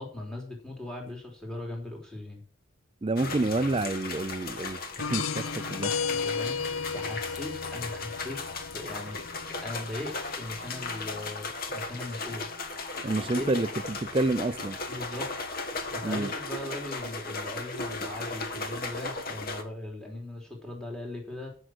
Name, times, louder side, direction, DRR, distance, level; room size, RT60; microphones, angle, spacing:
voice 1, 0.0-2.4 6.1-9.2 9.6-12.5 13.2-13.7 14.9-15.3 15.9-21.5, left 1 dB, 5° left, 3.4 m, -39 dB
voice 2, 3.0-5.9 13.0-14.8 16.0-16.3, right 2 dB, 25° right, 0.4 m, -29 dB
sound 1, 3.2-19.6, left 3 dB, 45° left, 1.5 m, -36 dB
sound 2, 5.0-11.3, left 5 dB, 85° left, 0.6 m, -35 dB
14.0 x 6.4 x 6.3 m
head